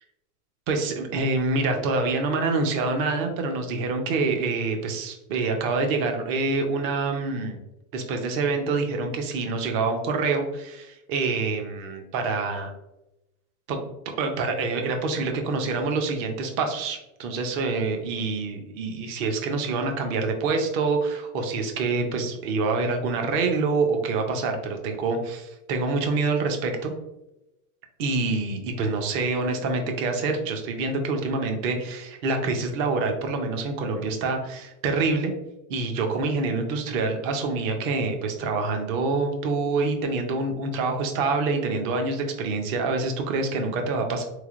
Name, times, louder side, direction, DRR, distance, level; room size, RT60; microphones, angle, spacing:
voice 1, 0.7-7.6 7.9-12.7 13.7-13.8 14.2-26.9 28.0-35.3 35.7-44.2, right 3 dB, 30° right, 5 dB, 0.4 m, -26 dB
3.7 x 3.2 x 2.4 m, 0.92 s
supercardioid pair, 145°, 46 cm